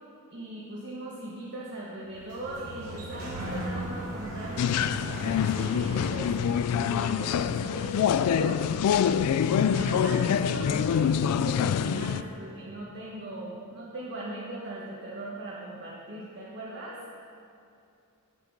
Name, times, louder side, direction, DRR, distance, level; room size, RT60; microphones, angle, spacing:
voice 1, 0.3-5.0 5.2-6.3 6.8-8.6 9.4-17.0, right 1 dB, 50° right, -6 dB, 1.3 m, -39 dB
Sliding door, 2.0-7.1, equal, 85° right, 2.5 m, -38 dB
sound 1, 4.6-12.2, left 8 dB, 85° left, 0.3 m, -25 dB
9.1 x 7.4 x 5.2 m, 2.6 s
head